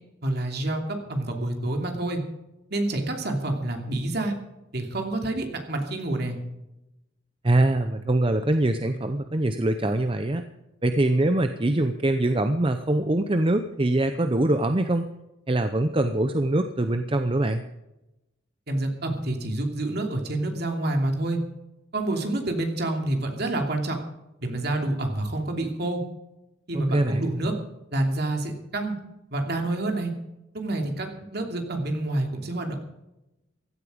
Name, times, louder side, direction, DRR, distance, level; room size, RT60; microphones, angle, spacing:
voice 1, 0.2-2.2 2.7-4.3 4.7-6.4 18.7-21.4 21.9-24.0 24.4-26.0 26.7-27.5 27.9-28.9 29.3-30.1 30.5-32.8, right 2 dB, 55° right, 3 dB, 2.8 m, -28 dB
voice 2, 7.4-10.4 10.8-15.0 15.5-17.6 26.9-27.3, right 1 dB, 25° right, 8 dB, 0.7 m, -23 dB
16.5 x 12.5 x 5.1 m, 0.94 s
head